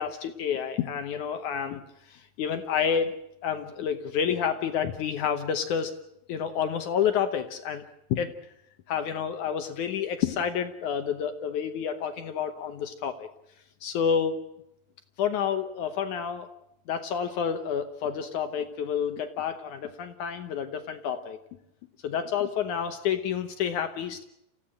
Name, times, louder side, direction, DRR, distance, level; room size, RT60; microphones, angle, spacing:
voice 1, 0.0-1.8 2.1-3.2 3.4-5.9 6.3-8.4 8.9-13.3 13.8-14.4 15.2-16.5 16.9-21.4 22.0-24.2, left 7 dB, 70° left, 7 dB, 2.1 m, -29 dB
28.5 x 15.5 x 7.6 m, 0.80 s
omnidirectional pair, 4.2 m